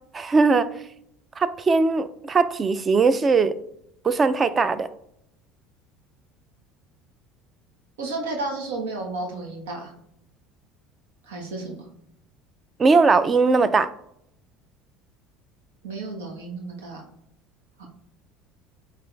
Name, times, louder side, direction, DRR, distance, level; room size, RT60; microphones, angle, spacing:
voice 1, 0.1-0.7 1.4-3.6 4.0-4.9 12.8-13.9, right 4 dB, 30° right, 14 dB, 0.5 m, -19 dB
voice 2, 8.0-9.9 11.3-11.8 15.8-17.0 17.8-17.9, right 2 dB, 90° right, 1 dB, 1.3 m, -32 dB
8.5 x 3.4 x 3.4 m, 0.74 s
supercardioid pair, 90°, 0 cm